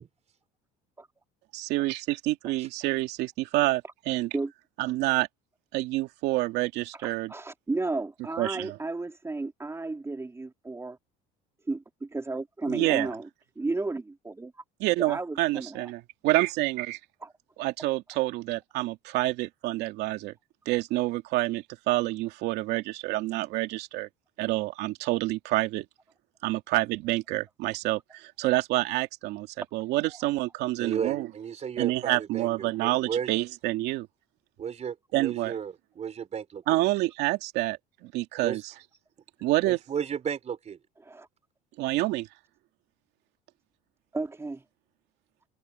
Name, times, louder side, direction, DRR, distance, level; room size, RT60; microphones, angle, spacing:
voice 1, 1.5-4.3 4.8-5.3 5.7-7.3 8.4-8.7 12.7-13.1 14.8-17.0 17.6-20.3 20.7-24.1 24.4-25.8 26.4-29.5 29.7-31.3 31.8-34.1 35.1-35.5 36.7-38.6 39.4-39.8 41.8-42.3, right 18 dB, 70° right, 2.5 m, -28 dB
voice 2, 7.0-11.0 11.7-13.3 13.6-14.5 15.0-15.9 17.2-17.3 41.0-41.3 44.1-44.6, right 3 dB, 15° right, 3.9 m, -33 dB
voice 3, 30.8-33.3 34.6-36.8 38.4-38.6 39.6-40.8, right 7 dB, 40° right, 4.4 m, -34 dB
supercardioid pair, 95°, 18 cm